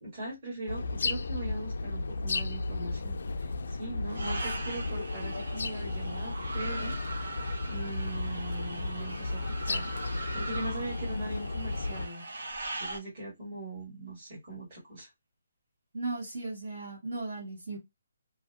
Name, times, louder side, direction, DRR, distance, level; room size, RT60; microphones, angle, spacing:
voice 1, 0.0-7.0 7.7-12.3 12.8-15.1, right 2 dB, 25° right, 1.5 m, -40 dB
sound 1, 0.7-12.1, left 3 dB, 60° left, 0.3 m, -34 dB
sound 2, 4.1-13.0, right 2 dB, 65° right, 0.8 m, -40 dB
voice 2, 15.9-17.8, right 3 dB, 45° right, 1.4 m, -36 dB
2.6 x 2.5 x 2.2 m
hypercardioid pair, 180°, 0 cm